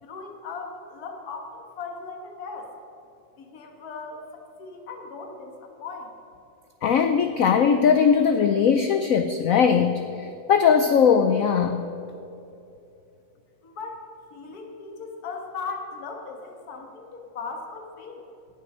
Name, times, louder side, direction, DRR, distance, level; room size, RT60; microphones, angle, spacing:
voice 1, 0.0-2.7 3.4-6.1 13.6-14.1 14.3-18.3, left 4 dB, 55° left, 3 dB, 1.8 m, -38 dB
voice 2, 6.8-11.9, left 7 dB, 85° left, 7 dB, 0.7 m, -20 dB
18.0 x 7.3 x 5.5 m, 2.7 s
omnidirectional pair, 2.1 m